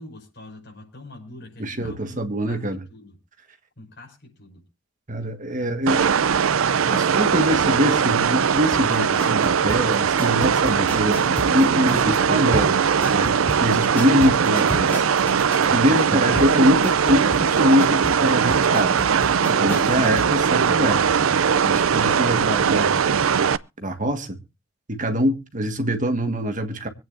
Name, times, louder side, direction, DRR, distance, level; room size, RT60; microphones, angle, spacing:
voice 1, 0.0-3.2 3.8-4.7 5.6-5.7 6.0-6.3, left 1 dB, 55° left, 5.9 m, -44 dB
voice 2, 1.6-2.8 5.1-6.0 6.9-12.8 13.1-15.0 15.7-19.0 19.5-21.0 21.6-23.0 23.8-24.4 24.9-26.9, equal, 40° right, 1.7 m, -23 dB
sound 1, 5.9-23.6, right 7 dB, 90° right, 0.5 m, -20 dB
sound 2, 8.7-20.3 20.6-20.7, equal, 10° left, 3.3 m, -32 dB
24.5 x 9.2 x 2.6 m
head